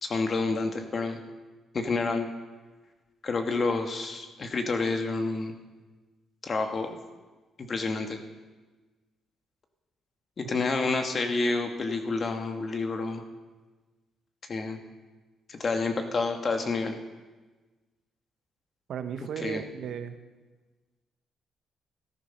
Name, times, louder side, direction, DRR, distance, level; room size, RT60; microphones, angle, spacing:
voice 1, 0.0-1.2 1.7-2.3 3.2-5.5 6.4-7.0 7.6-8.2 10.4-13.2 14.5-14.8 15.5-17.0 19.4-19.6, left 3 dB, 40° left, 5 dB, 1.8 m, -29 dB
voice 2, 18.9-20.2, right 7 dB, 70° right, 9 dB, 1.2 m, -35 dB
15.0 x 13.0 x 5.8 m, 1.3 s
cardioid pair, 90°, 0 cm